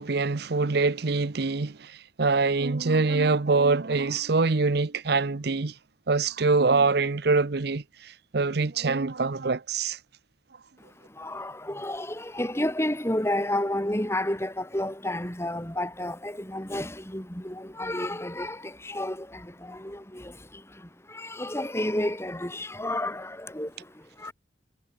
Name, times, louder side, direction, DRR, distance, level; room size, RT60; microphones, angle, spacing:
voice 1, 0.0-5.7 6.1-10.0, right 3 dB, 60° right, 0.8 m, -24 dB
voice 2, 10.8-24.3, left 1 dB, 15° left, 4.1 m, -31 dB
head